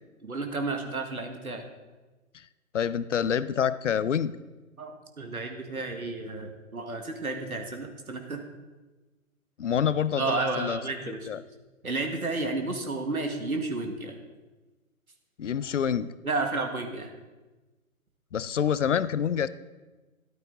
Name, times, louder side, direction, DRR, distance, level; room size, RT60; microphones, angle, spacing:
voice 1, 0.2-1.6 4.8-8.4 10.2-11.3 11.8-14.2 16.2-17.1, right 3 dB, 80° right, 4 dB, 1.8 m, -32 dB
voice 2, 2.7-4.3 9.6-10.8 11.3-11.4 15.4-16.1 18.3-19.5, left 8 dB, 55° left, 16 dB, 0.6 m, -27 dB
13.0 x 12.5 x 3.8 m, 1.2 s
figure-of-eight pair, 135°, 43 cm